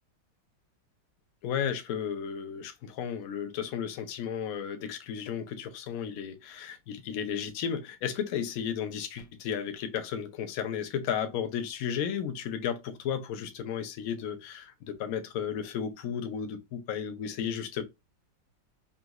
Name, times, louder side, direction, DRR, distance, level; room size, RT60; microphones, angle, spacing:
voice 1, 1.4-17.8, left 8 dB, 65° left, 0.9 m, -34 dB
4.0 x 2.7 x 2.4 m
omnidirectional pair, 2.0 m